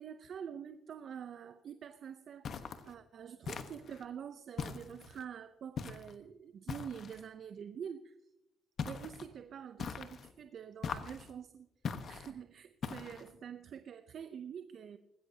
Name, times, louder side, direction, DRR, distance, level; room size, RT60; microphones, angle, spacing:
voice 1, 0.0-8.1 8.8-11.7 12.1-15.0, right 8 dB, 60° right, 11 dB, 0.6 m, -46 dB
sound 1, 2.4-2.9 3.5-4.0 4.6-5.2 5.8-6.2 6.7-7.2 8.8-9.3 9.8-10.3 10.8-11.3 11.8-12.3 12.8-13.3, left 6 dB, 55° left, 1.1 m, -41 dB
19.0 x 16.0 x 2.8 m, 0.89 s
supercardioid pair, 65°, 0 cm